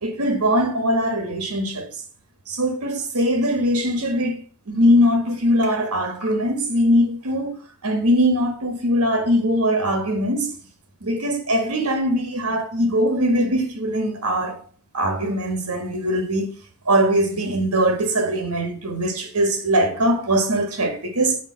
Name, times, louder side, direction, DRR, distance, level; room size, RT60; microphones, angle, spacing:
voice 1, 0.0-1.9 2.5-4.4 4.7-7.6 7.8-10.5 11.0-14.6 14.9-16.5 16.8-21.4, equal, 90° right, 1.7 m, -21 dB
5.2 x 5.1 x 6.2 m
head